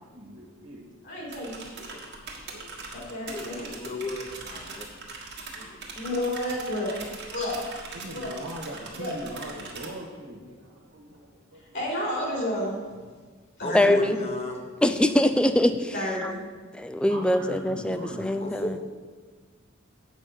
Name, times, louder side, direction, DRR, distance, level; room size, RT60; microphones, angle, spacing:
voice 1, 0.0-0.9 1.9-2.7 3.0-3.1 7.9-11.8 17.1-18.2, equal, 80° right, -1 dB, 1.6 m, -41 dB
voice 2, 1.0-2.0 2.9-3.7 5.5-7.0 7.3-7.7 8.1-8.4 9.0-9.1 11.7-12.8 13.6-14.0 15.9-16.4, left 1 dB, 60° left, -3 dB, 3.2 m, -31 dB
sound 1, 1.3-9.9, right 3 dB, 55° right, 1.6 m, -41 dB
voice 3, 3.3-4.9 13.6-14.6 18.4-18.8, left 2 dB, 30° left, 3 dB, 1.1 m, -32 dB
voice 4, 13.7-14.2 14.8-15.9 16.7-18.8, left 1 dB, 5° left, 9 dB, 0.4 m, -23 dB
8.2 x 5.4 x 7.2 m, 1.5 s
head